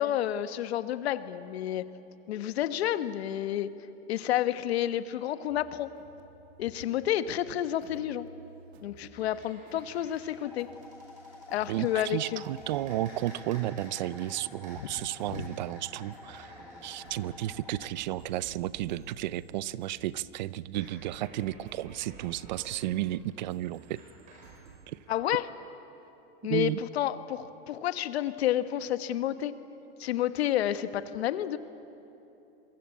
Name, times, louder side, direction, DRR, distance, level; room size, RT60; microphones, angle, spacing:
voice 1, 0.0-1.8 2.3-3.7 4.1-5.9 6.6-8.3 8.8-10.7 11.5-12.4 14.8-14.9 15.3-15.5 25.1-25.5 26.4-29.5 30.0-31.6, left 12 dB, 75° left, 11 dB, 1.4 m, -30 dB
sound 1, 5.5-24.9, right 5 dB, 80° right, 2.5 m, -54 dB
sound 2, 9.1-19.5 20.6-24.7, right 1 dB, 25° right, 5.2 m, -54 dB
sound 3, 10.4-17.9, left 3 dB, 5° left, 0.5 m, -50 dB
voice 2, 11.7-16.5 16.8-24.0 24.9-25.0 26.5-26.8, right 14 dB, 45° right, 19 dB, 0.5 m, -33 dB
27.5 x 23.0 x 8.5 m, 2.9 s
supercardioid pair, 175°, 32 cm